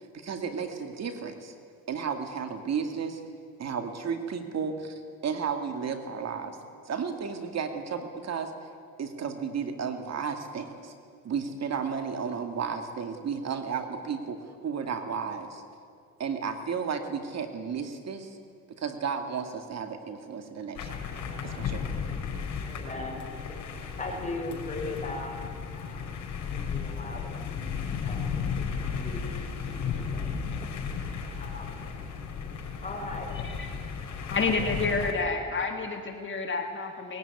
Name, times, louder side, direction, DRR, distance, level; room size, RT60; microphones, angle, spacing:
voice 1, 0.1-1.5 1.9-3.2 3.6-6.6 6.9-8.7 9.0-10.9 11.2-15.6 16.2-18.4 18.8-20.9 21.4-21.9, right 6 dB, 60° right, 6 dB, 2.2 m, -33 dB
sound 1, 20.7-35.1, left 6 dB, 70° left, 5.0 m, -34 dB
voice 2, 22.6-23.2 24.0-25.4 25.7-30.4 31.4-31.8 32.8-33.3 34.4-35.6, left 2 dB, 25° left, 1 dB, 5.6 m, -40 dB
voice 3, 34.3-37.2, left 4 dB, 40° left, 3 dB, 2.2 m, -29 dB
20.0 x 17.0 x 9.6 m, 2.2 s
cardioid pair, 90°, 30 cm